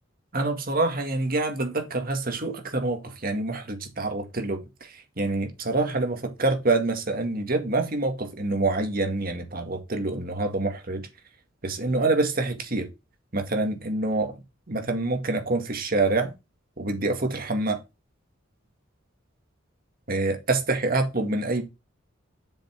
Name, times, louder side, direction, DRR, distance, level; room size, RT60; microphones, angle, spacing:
voice 1, 0.3-11.0 11.6-12.9 13.3-14.3 14.7-16.3 16.8-17.8 20.1-21.6, right 2 dB, 50° right, 2.0 m, -26 dB
7.3 x 5.6 x 4.5 m
head